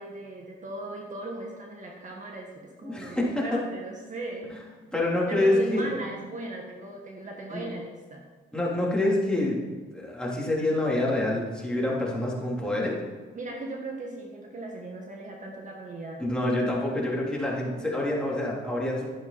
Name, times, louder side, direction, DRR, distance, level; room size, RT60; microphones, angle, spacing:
voice 1, 0.0-4.6 5.3-8.2 13.3-16.2, right 2 dB, 40° right, 0 dB, 1.8 m, -37 dB
voice 2, 2.8-3.6 4.9-5.9 7.5-7.6 8.5-9.6 9.9-13.0 16.2-19.1, left 1 dB, 5° left, -5 dB, 3.5 m, -26 dB
12.0 x 10.5 x 4.3 m, 1.4 s
cardioid pair, 105°, 20 cm